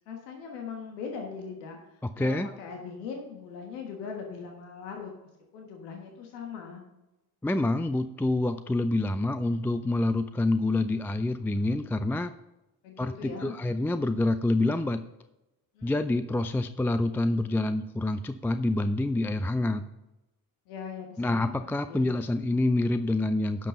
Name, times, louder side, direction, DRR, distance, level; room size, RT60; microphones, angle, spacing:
voice 1, 0.1-6.8 12.8-13.6 15.7-16.1 20.7-22.1, left 5 dB, 85° left, 2 dB, 1.5 m, -40 dB
voice 2, 2.0-2.5 7.4-12.3 13.0-15.0 15.8-19.9 21.2-23.7, left 2 dB, 5° left, 11 dB, 0.4 m, -27 dB
11.0 x 5.3 x 5.5 m, 0.97 s
hypercardioid pair, 60°, 46 cm